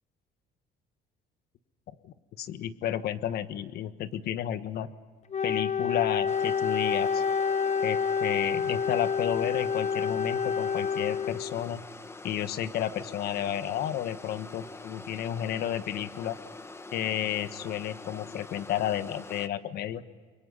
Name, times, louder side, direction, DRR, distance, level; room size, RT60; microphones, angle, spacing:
voice 1, 2.0-4.9 5.4-7.2 7.8-11.8 12.2-16.4 16.9-20.0, left 11 dB, 70° left, 12 dB, 1.3 m, -32 dB
Wind instrument woodwind instrument, 5.3-11.7, left 6 dB, 40° left, 0.9 m, -28 dB
sound 1, 6.3-19.5, left 2 dB, 15° left, 1.1 m, -45 dB
29.5 x 23.0 x 5.6 m, 1.5 s
cardioid pair, 110°, 17 cm